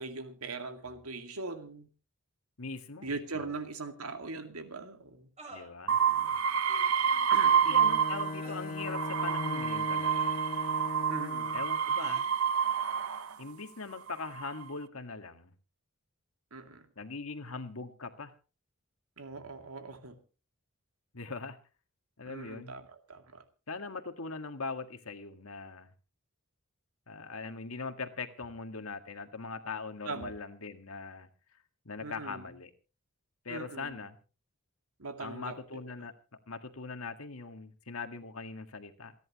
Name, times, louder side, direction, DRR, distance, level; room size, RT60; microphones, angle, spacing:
voice 1, 0.0-1.9 3.0-5.3 7.1-7.7 11.1-11.6 16.5-16.9 19.2-20.2 22.2-23.4 30.1-30.3 32.0-32.5 33.5-34.0 35.0-35.6, right 3 dB, 85° right, 7 dB, 2.3 m, -41 dB
voice 2, 2.6-3.5 5.5-6.4 7.7-10.3 11.5-12.2 13.4-15.5 17.0-18.3 21.1-21.6 22.2-22.7 23.7-25.9 27.1-31.3 31.9-32.7 33.5-34.2 35.2-36.1 36.5-39.1, left 4 dB, 70° left, 8 dB, 1.8 m, -41 dB
sound 1, 3.5-3.6 5.4-5.7 6.6-7.0 8.4-8.7 10.0-10.8 12.0-12.2, right 2 dB, 30° right, 5.5 m, -50 dB
sound 2, 5.9-8.4 8.8-13.3 14.1-14.6, right 7 dB, 70° right, 0.8 m, -28 dB
Bowed string instrument, 7.6-11.8, left 4 dB, 40° left, 0.7 m, -39 dB
27.5 x 10.5 x 3.0 m, 0.34 s
head